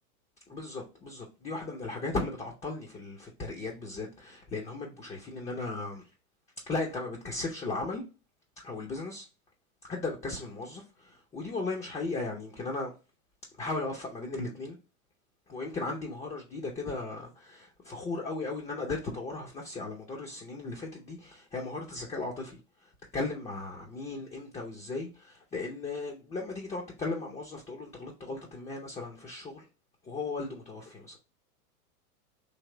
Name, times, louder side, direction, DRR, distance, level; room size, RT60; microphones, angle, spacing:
voice 1, 0.5-6.0 6.7-8.0 8.6-9.3 9.9-12.9 13.5-14.8 15.5-22.6 23.1-29.7 30.0-31.2, left 3 dB, 15° left, 0.6 m, -36 dB
3.4 x 2.8 x 3.7 m
hypercardioid pair, 115°, 45 cm